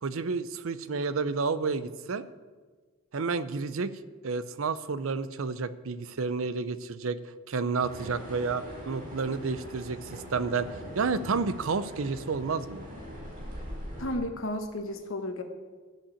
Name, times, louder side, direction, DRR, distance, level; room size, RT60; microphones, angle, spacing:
voice 1, 0.0-2.2 3.1-3.9 4.2-7.2 7.5-12.8, right 4 dB, 65° right, 14 dB, 0.5 m, -30 dB
sound 1, 7.8-14.2, equal, 35° right, 4.4 m, -42 dB
voice 2, 14.0-15.4, left 1 dB, 60° left, 5 dB, 1.5 m, -33 dB
13.5 x 5.7 x 8.3 m, 1.4 s
head